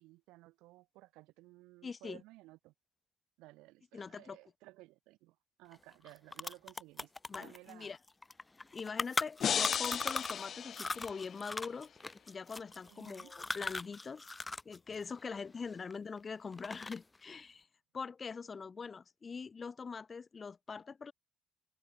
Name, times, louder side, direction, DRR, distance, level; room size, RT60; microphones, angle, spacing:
voice 1, 0.0-2.7 3.4-7.1 7.4-7.9 12.8-13.3, right 20 dB, 85° right, 7.8 m, -57 dB
voice 2, 1.8-2.2 3.9-4.4 7.3-8.0 8.7-12.0 12.3-14.3 14.7-17.7 17.9-21.1, left 5 dB, 35° left, 0.8 m, -43 dB
sound 1, 5.7-5.8 6.1-10.5 10.7-14.8 15.0-16.2 16.5-17.2, left 3 dB, 20° left, 2.4 m, -39 dB
sound 2, 9.4-11.5, left 8 dB, 55° left, 0.3 m, -35 dB
open air
cardioid pair, 85°, 0 cm